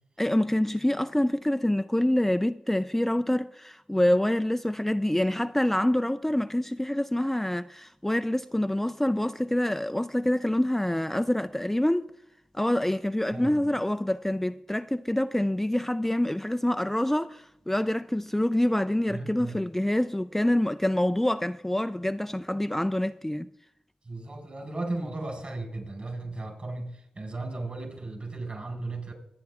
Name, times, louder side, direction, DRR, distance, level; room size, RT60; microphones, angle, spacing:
voice 1, 0.2-12.1 12.5-23.5, left 1 dB, 10° left, 0.4 m, -26 dB
voice 2, 13.3-13.6 19.1-19.6 24.0-29.1, right 2 dB, 45° right, 4.7 m, -35 dB
21.5 x 8.7 x 3.6 m
supercardioid pair, 40°, 3 cm